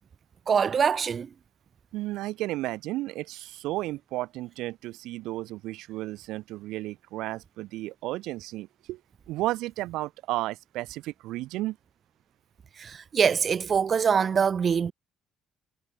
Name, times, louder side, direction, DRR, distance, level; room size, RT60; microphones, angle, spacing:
voice 1, 0.5-1.3 12.8-14.9, right 6 dB, 35° right, 0.4 m, -24 dB
voice 2, 1.9-9.0 9.3-11.8, right 17 dB, 85° right, 2.1 m, -33 dB
cardioid pair, 125°, 0 cm